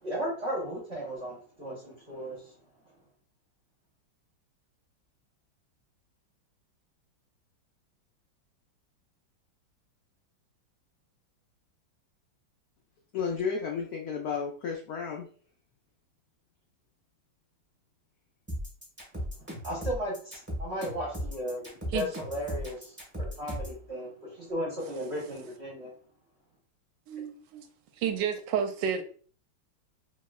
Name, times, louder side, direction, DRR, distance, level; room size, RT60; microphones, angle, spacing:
voice 1, 0.0-2.5 19.5-25.9, equal, 45° right, 0.9 m, -35 dB
voice 2, 13.1-15.3, left 6 dB, 75° left, 0.8 m, -32 dB
sound 1, 18.5-23.8, equal, 10° right, 0.9 m, -36 dB
voice 3, 27.1-27.7 28.0-29.0, right 8 dB, 75° right, 1.2 m, -30 dB
3.1 x 2.8 x 2.3 m
omnidirectional pair, 2.1 m